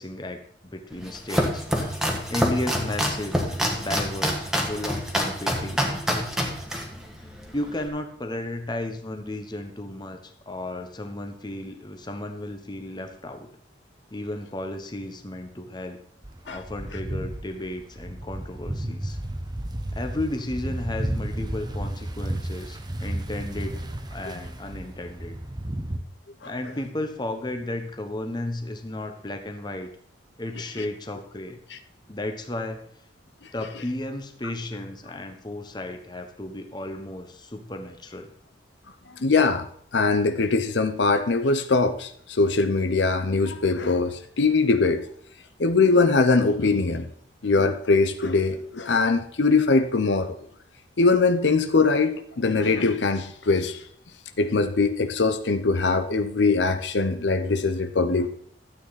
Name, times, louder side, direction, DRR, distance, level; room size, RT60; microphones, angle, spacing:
voice 1, 0.0-1.7 2.3-3.4 3.8-6.3 7.5-10.2 10.5-13.5 14.1-16.0 16.5-19.2 19.9-23.8 24.1-25.4 26.4-29.9 30.4-31.6 32.1-32.8 33.5-38.3, left 1 dB, 25° left, 6 dB, 1.1 m, -33 dB
Domestic sounds home sounds, 0.9-7.9, equal, 5° right, 1.5 m, -27 dB
sound 1, 16.2-26.0, right 1 dB, 25° right, 0.9 m, -33 dB
voice 2, 39.2-39.6 39.9-45.0 45.6-47.1 47.4-50.3 51.0-53.8 54.4-58.3, left 3 dB, 80° left, 9 dB, 0.8 m, -22 dB
12.5 x 8.4 x 4.1 m, 0.62 s
head